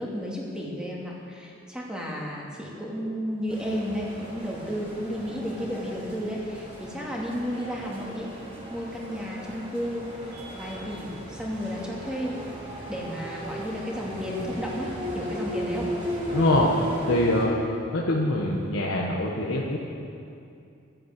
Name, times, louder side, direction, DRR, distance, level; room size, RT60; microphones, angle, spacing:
voice 1, 0.0-8.4 8.7-12.4 12.9-15.9, equal, 5° right, -4 dB, 2.4 m, -33 dB
sound 1, 3.5-17.5, equal, 30° right, 3.7 m, -36 dB
voice 2, 16.3-16.7 17.1-17.6 17.9-19.8, left 1 dB, 90° left, -3 dB, 1.4 m, -24 dB
13.5 x 10.5 x 8.2 m, 2.6 s
head